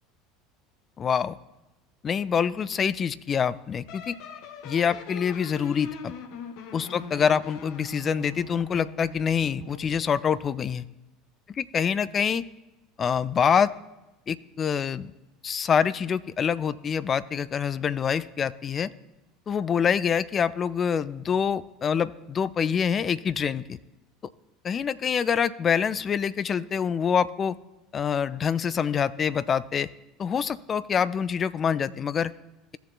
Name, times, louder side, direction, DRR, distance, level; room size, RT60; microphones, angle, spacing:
voice 1, 1.0-1.4 2.0-4.2 4.6-6.1 6.7-10.9 11.6-12.4 13.0-13.7 14.3-15.1 15.4-18.9 19.5-23.8 24.6-27.6 27.9-29.9 30.2-32.3, left 7 dB, 30° left, 14 dB, 0.4 m, -26 dB
sound 1, 3.9-9.9, left 4 dB, 55° left, 0.8 m, -41 dB
15.5 x 6.9 x 2.4 m, 1.0 s
figure-of-eight pair, 70°, 0 cm